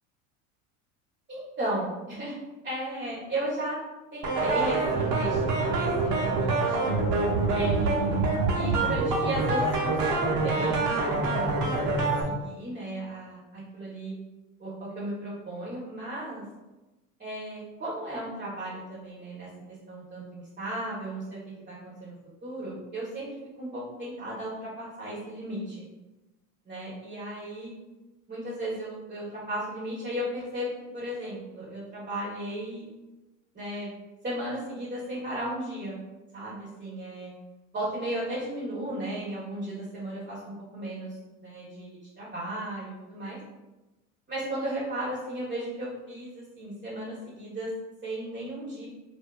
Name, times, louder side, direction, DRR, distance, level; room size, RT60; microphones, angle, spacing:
voice 1, 1.3-2.4 2.6-3.8 4.1-6.9 7.5-8.2 8.5-14.2 14.6-16.4 17.2-22.1 22.4-25.9 26.6-27.7 28.3-32.9 33.5-33.9 34.2-36.0 36.3-37.3 37.7-43.4 44.3-47.7 48.0-48.9, right 1 dB, 20° right, -7 dB, 1.0 m, -35 dB
sound 1, 4.2-12.2, right 3 dB, 55° right, 0.8 m, -26 dB
2.5 x 2.4 x 2.3 m, 1.1 s
hypercardioid pair, 80°, 42 cm